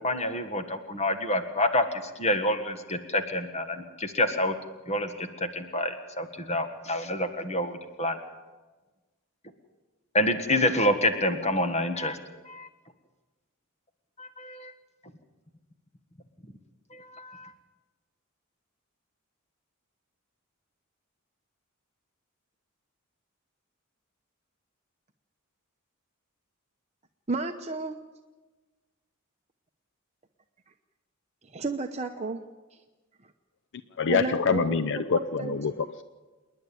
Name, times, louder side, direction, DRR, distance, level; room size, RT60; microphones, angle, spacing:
voice 1, 0.0-4.5 4.9-8.2 10.1-12.2 12.4-12.7 14.2-14.7 16.9-17.5, left 1 dB, 30° left, 7 dB, 1.6 m, -28 dB
voice 2, 27.3-28.0 31.5-32.4 34.1-34.8 35.1-35.6, right 3 dB, 30° right, 4 dB, 0.9 m, -31 dB
voice 3, 34.0-36.0, left 5 dB, 60° left, 10 dB, 0.6 m, -26 dB
27.5 x 10.5 x 9.2 m, 1.3 s
head